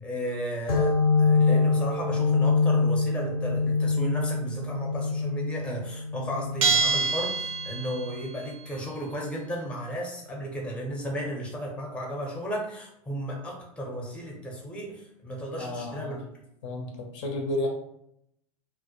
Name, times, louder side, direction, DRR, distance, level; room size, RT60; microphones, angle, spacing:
voice 1, 0.0-16.2, equal, 5° left, -1 dB, 0.6 m, -34 dB
sound 1, 0.7-8.0, left 4 dB, 90° left, 0.8 m, -25 dB
Bell, 6.6-8.2, right 5 dB, 75° right, 0.4 m, -25 dB
voice 2, 15.6-16.2 16.6-17.7, left 1 dB, 55° left, 1 dB, 0.6 m, -32 dB
2.1 x 2.0 x 2.8 m, 0.76 s
figure-of-eight pair, 85°, 18 cm